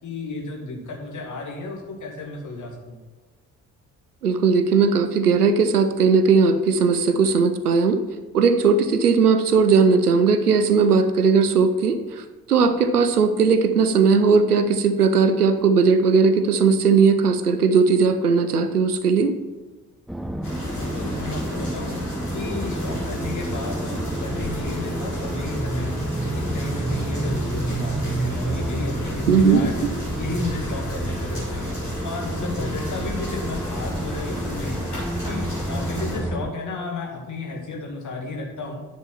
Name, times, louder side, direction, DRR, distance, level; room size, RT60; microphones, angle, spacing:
voice 1, 0.0-3.0 20.7-22.1 22.3-29.9 30.2-38.8, left 3 dB, 40° left, 2 dB, 2.1 m, -33 dB
voice 2, 4.2-8.0 8.3-12.0 12.5-19.3 29.3-29.6, right 5 dB, 85° right, 10 dB, 0.6 m, -18 dB
sound 1, 20.1-36.5, right 1 dB, ahead, 0.4 m, -29 dB
sound 2, 20.4-36.2, left 1 dB, 90° left, 2.0 m, -34 dB
10.0 x 5.3 x 5.8 m, 1.3 s
figure-of-eight pair, 45°, 44 cm